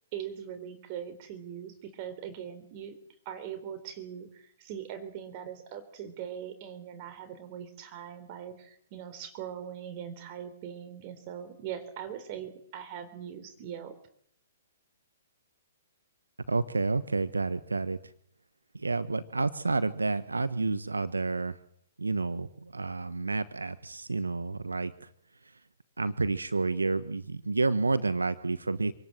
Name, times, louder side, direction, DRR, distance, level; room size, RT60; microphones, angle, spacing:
voice 1, 0.1-2.9 3.3-13.9, right 9 dB, 40° right, 10 dB, 3.6 m, -41 dB
voice 2, 16.5-18.0 18.7-21.6 22.0-25.1 26.0-28.9, right 3 dB, 90° right, 14 dB, 1.2 m, -30 dB
27.0 x 19.0 x 7.7 m, 0.68 s
hypercardioid pair, 125°, 0 cm